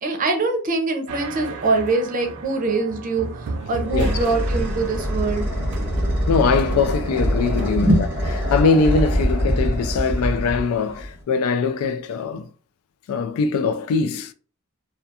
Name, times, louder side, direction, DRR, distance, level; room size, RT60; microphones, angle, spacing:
voice 1, 0.0-5.5 7.8-8.1, right 3 dB, 40° right, 0.6 m, -23 dB
sound 1, 1.1-8.6, right 4 dB, 85° right, 0.4 m, -34 dB
sound 2, 3.3-11.2, equal, 10° right, 1.1 m, -24 dB
voice 2, 6.3-8.1 8.5-12.5 13.1-14.3, left 4 dB, 85° left, 0.3 m, -21 dB
2.4 x 2.3 x 2.7 m
head